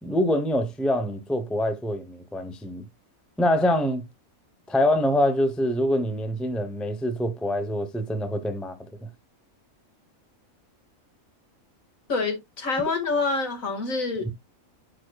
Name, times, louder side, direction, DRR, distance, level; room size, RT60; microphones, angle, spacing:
voice 1, 0.0-2.8 3.4-4.1 4.7-9.1, left 1 dB, ahead, 0.7 m, -25 dB
voice 2, 12.1-14.3, left 3 dB, 70° left, 2.4 m, -26 dB
9.6 x 4.6 x 2.3 m
omnidirectional pair, 1.5 m